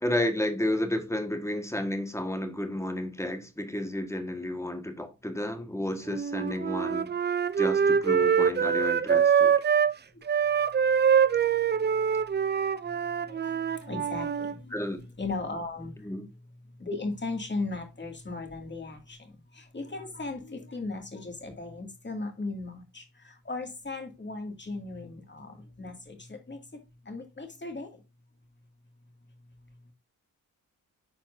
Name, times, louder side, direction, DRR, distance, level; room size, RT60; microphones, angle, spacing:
voice 1, 0.0-7.1 7.6-9.5 14.7-15.0 16.0-16.2, left 1 dB, 10° left, 1.6 m, -31 dB
Wind instrument woodwind instrument, 6.1-9.9 10.3-14.5, right 7 dB, 30° right, 0.4 m, -24 dB
voice 2, 13.1-14.7 15.2-15.9 16.8-26.6 27.1-27.9, left 3 dB, 30° left, 2.4 m, -37 dB
11.0 x 4.3 x 2.7 m
cardioid pair, 60°, 36 cm